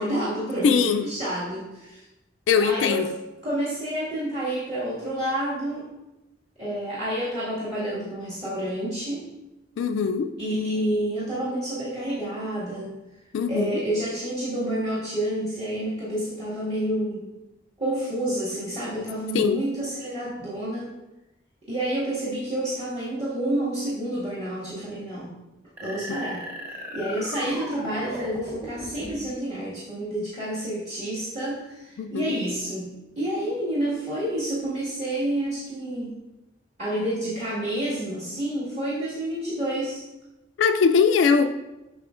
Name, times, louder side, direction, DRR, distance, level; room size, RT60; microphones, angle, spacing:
voice 1, 0.0-2.0 2.6-3.0 3.4-5.9 6.6-9.2 10.4-12.9 13.5-17.2 17.8-20.9 21.7-25.3 25.8-26.4 26.7-36.2 36.8-40.0, right 1 dB, 35° right, -11 dB, 1.8 m, -29 dB
voice 2, 0.6-1.1 2.5-3.1 9.8-10.3 13.3-13.8 19.3-19.6 26.1-26.2 32.0-32.4 40.6-41.5, left 6 dB, 80° left, 8 dB, 0.3 m, -21 dB
sound 1, 25.8-29.3, equal, 10° right, 1.1 m, -37 dB
8.3 x 5.5 x 2.5 m, 0.99 s
head